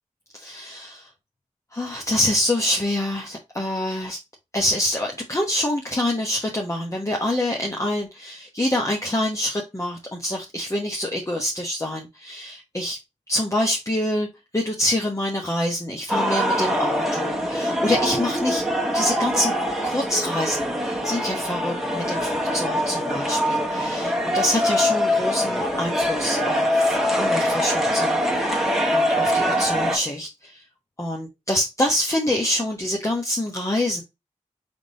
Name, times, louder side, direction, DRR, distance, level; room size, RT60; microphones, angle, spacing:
voice 1, 0.3-1.1 1.7-4.2 4.5-13.0 13.3-14.3 14.5-18.6 18.9-19.5 19.8-30.6 31.0-34.0, left 1 dB, 25° left, 0 dB, 1.1 m, -26 dB
sound 1, 16.1-30.0, equal, ahead, 1.6 m, -23 dB
3.8 x 3.5 x 4.0 m, 0.23 s
cardioid pair, 45°, 13 cm